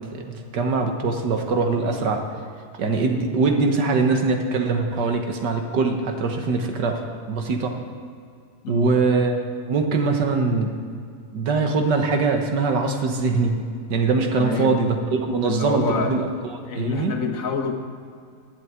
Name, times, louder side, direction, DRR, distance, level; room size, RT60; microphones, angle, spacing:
voice 1, 0.2-2.2 2.8-7.0 7.3-7.8 8.7-9.4 9.7-10.7 11.3-13.6 13.9-17.2, right 4 dB, 85° right, 4 dB, 1.8 m, -22 dB
voice 2, 14.3-14.8 15.4-16.1 16.6-17.7, left 6 dB, 55° left, 5 dB, 1.5 m, -27 dB
12.0 x 7.0 x 9.1 m, 2.3 s
omnidirectional pair, 1.8 m